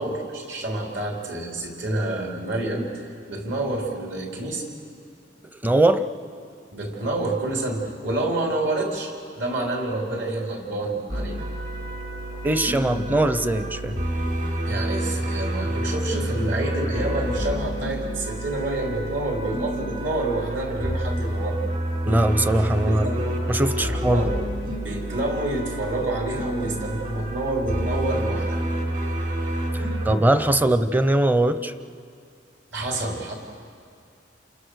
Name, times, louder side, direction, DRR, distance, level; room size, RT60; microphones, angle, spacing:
voice 1, 0.0-2.9 3.3-4.7 6.7-11.4 14.7-21.6 22.8-23.3 23.8-24.5 24.8-28.6 32.7-33.3, right 2 dB, 65° right, 0 dB, 4.0 m, -28 dB
voice 2, 5.6-6.1 12.4-13.9 22.1-23.0 23.5-24.3 30.1-31.7, right 1 dB, 10° right, 11 dB, 0.6 m, -20 dB
sound 1, 11.1-30.2, right 1 dB, 45° right, 3.5 m, -28 dB
29.0 x 28.0 x 6.5 m, 2.3 s
head